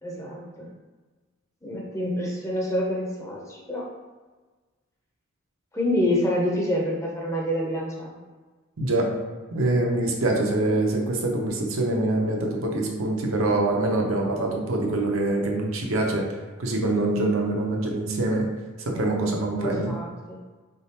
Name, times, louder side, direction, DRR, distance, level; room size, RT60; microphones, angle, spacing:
voice 1, 0.0-0.7 1.6-3.9 5.7-8.1 19.5-20.5, left 1 dB, 15° left, -2 dB, 0.5 m, -27 dB
voice 2, 8.8-9.1 9.5-16.3 16.6-18.5 18.9-20.0, right 2 dB, 90° right, 0 dB, 0.8 m, -24 dB
4.1 x 3.6 x 2.8 m, 1.3 s
head